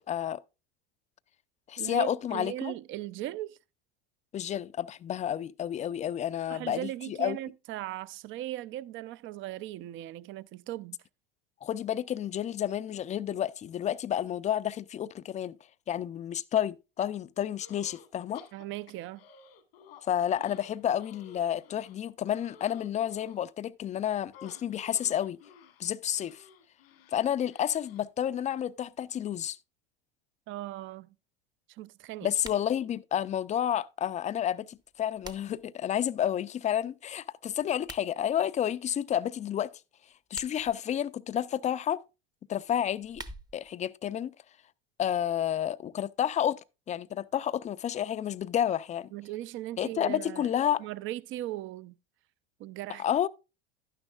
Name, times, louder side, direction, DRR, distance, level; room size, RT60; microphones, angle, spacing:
voice 1, 0.1-0.4 1.7-2.7 4.3-7.4 11.6-15.6 15.9-18.4 20.0-25.4 25.8-26.4 27.1-29.6 32.2-39.7 40.3-42.0 42.5-43.2 43.5-44.3 45.0-46.6 46.9-49.1 49.8-50.8 53.0-53.3, left 10 dB, 25° left, 0.4 m, -30 dB
voice 2, 1.8-3.6 6.5-11.0 18.5-19.2 30.5-31.2 31.7-32.3 49.1-50.5 50.8-52.0 52.6-53.0, right 14 dB, 45° right, 0.5 m, -38 dB
sound 1, 17.6-18.1 18.3-20.0 20.4-23.4 24.3-28.1, left 7 dB, 90° left, 1.8 m, -54 dB
sound 2, 32.3-32.7 34.7-35.7 37.7-38.1 40.1-40.8 42.8-43.7, right 3 dB, 15° right, 0.8 m, -47 dB
11.0 x 9.9 x 2.4 m
supercardioid pair, 100°, 29 cm